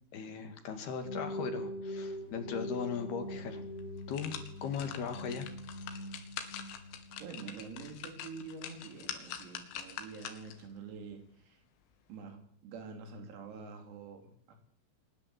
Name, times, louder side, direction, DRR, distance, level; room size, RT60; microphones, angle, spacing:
voice 1, 0.1-3.6 4.1-4.3 4.6-5.5 5.7-6.1, left 6 dB, 60° left, 7 dB, 3.5 m, -38 dB
sound 1, 1.0-8.9, equal, 10° left, 3.6 m, -43 dB
sound 2, 3.2-3.3 3.8-10.7 11.1-11.2, left 9 dB, 80° left, 4.8 m, -45 dB
voice 2, 7.2-11.6 12.1-14.6, right 5 dB, 90° right, 5 dB, 6.2 m, -47 dB
23.5 x 20.0 x 8.2 m, 0.65 s
omnidirectional pair, 6.0 m